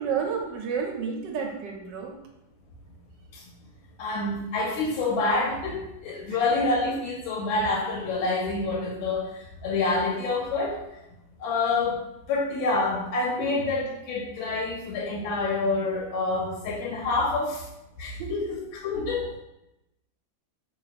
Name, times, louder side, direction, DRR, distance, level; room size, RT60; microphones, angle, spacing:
voice 1, 0.0-2.2 6.3-6.4 13.4-13.5 18.2-18.3, right 6 dB, 75° right, 2 dB, 1.1 m, -31 dB
voice 2, 4.0-10.8 11.4-12.0 12.3-17.6 18.0-19.3, left 3 dB, 85° left, -2 dB, 1.4 m, -27 dB
3.1 x 2.4 x 4.0 m, 0.90 s
omnidirectional pair, 2.1 m